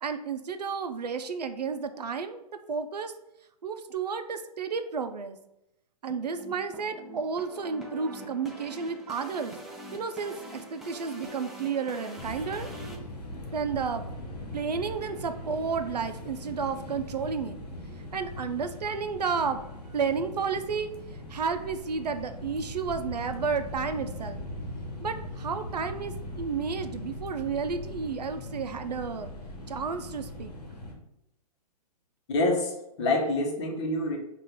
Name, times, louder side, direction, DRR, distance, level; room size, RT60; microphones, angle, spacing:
voice 1, 0.0-2.4 2.7-3.1 3.6-5.4 6.0-9.6 9.9-12.7 13.5-14.1 14.5-17.6 18.1-20.9 21.3-24.4 25.0-29.3 29.7-30.5, right 5 dB, 85° right, 9 dB, 0.5 m, -32 dB
sound 1, 6.1-13.0, right 1 dB, ahead, 0.4 m, -44 dB
sound 2, 12.2-30.9, left 1 dB, 85° left, 1.1 m, -40 dB
voice 2, 32.3-34.2, left 2 dB, 45° left, 2 dB, 0.9 m, -27 dB
4.3 x 2.5 x 3.6 m, 0.84 s
hypercardioid pair, 125°, 20 cm